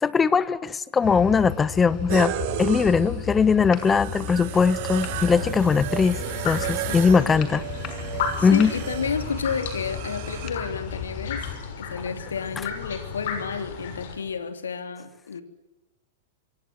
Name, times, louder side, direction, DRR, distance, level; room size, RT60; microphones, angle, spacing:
voice 1, 0.0-7.6 8.4-8.7, left 5 dB, 20° left, 17 dB, 1.3 m, -20 dB
sound 1, 1.0-11.6, left 8 dB, 40° left, 6.2 m, -35 dB
sound 2, 2.1-10.5, right 15 dB, 55° right, 2.1 m, -34 dB
sound 3, 4.9-14.2, left 6 dB, 60° left, 6.6 m, -35 dB
voice 2, 6.9-7.7 8.0-11.5 11.8-15.4, left 6 dB, 80° left, 9 dB, 3.0 m, -31 dB
26.5 x 23.5 x 7.7 m, 0.99 s
hypercardioid pair, 100°, 0 cm